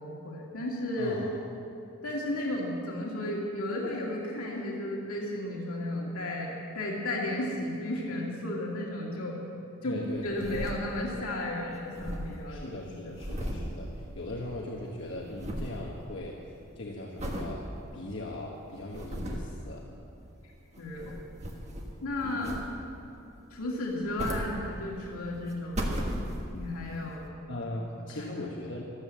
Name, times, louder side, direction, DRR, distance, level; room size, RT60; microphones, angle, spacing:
voice 1, 0.0-1.2 2.0-9.4 9.8-13.2 20.4-20.5 20.8-21.2 22.0-22.6 23.5-25.9 26.5-27.3 28.2-28.5, left 1 dB, 85° left, -2 dB, 2.2 m, -34 dB
voice 2, 1.0-1.4 9.8-10.5 12.5-17.6 17.9-19.8 22.2-22.5 27.5-28.8, left 1 dB, 55° left, -2 dB, 1.2 m, -39 dB
sound 1, 10.1-11.3 11.5-11.6 11.8-14.6 14.8-15.9 16.3-16.6 17.2-17.6 18.1-18.2 18.7-19.6 20.6-22.0 22.4-23.0 23.8-25.1 25.5-26.7 27.3-27.4, equal, 30° right, 1.5 m, -36 dB
13.5 x 12.5 x 7.4 m, 2.7 s
head